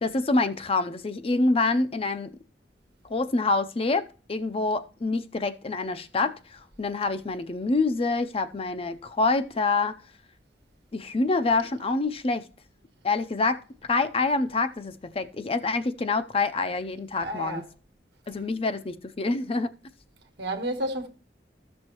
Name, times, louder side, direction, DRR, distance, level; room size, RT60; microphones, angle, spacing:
voice 1, 0.0-2.3 3.0-10.0 10.9-12.5 13.0-17.6 18.3-19.7, left 3 dB, 30° left, 0.5 m, -26 dB
voice 2, 17.2-17.7 20.4-21.1, right 1 dB, 65° right, 1.3 m, -31 dB
14.0 x 6.2 x 3.0 m
head